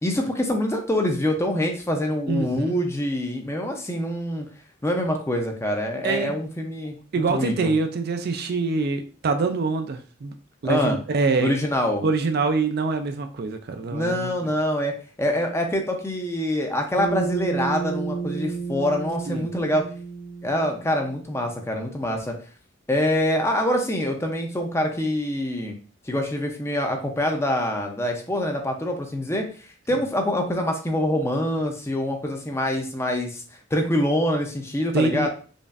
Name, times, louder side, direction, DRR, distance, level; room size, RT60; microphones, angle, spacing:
voice 1, 0.0-4.5 4.8-7.0 7.3-7.7 10.6-11.0 11.4-12.0 13.9-14.9 15.2-19.8 20.4-22.3 22.9-25.8 26.1-29.5 29.9-33.4 33.7-35.3, left 1 dB, 15° left, 3 dB, 0.5 m, -25 dB
voice 2, 2.3-2.7 6.0-6.4 7.1-10.3 10.6-11.5 12.0-14.3 19.3-19.5 34.9-35.3, right 4 dB, 50° right, 7 dB, 0.4 m, -25 dB
Bass guitar, 17.0-21.4, right 5 dB, 60° left, 0.8 m, -31 dB
5.2 x 2.5 x 2.4 m, 0.40 s
head